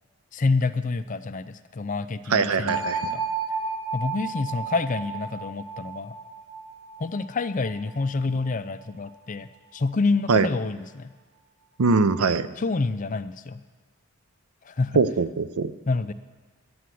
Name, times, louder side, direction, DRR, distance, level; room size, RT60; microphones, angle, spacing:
voice 1, 0.3-2.8 3.1-3.2 3.9-6.1 7.0-11.1 12.6-13.6 14.6-15.0 15.9-16.1, left 3 dB, 35° left, 12 dB, 0.4 m, -27 dB
voice 2, 2.3-3.1 10.3-10.5 11.8-12.5 14.9-15.7, right 4 dB, 85° right, 14 dB, 0.6 m, -22 dB
sound 1, 2.7-8.5, right 5 dB, 40° right, 2.4 m, -33 dB
11.5 x 9.4 x 7.6 m, 1.3 s
head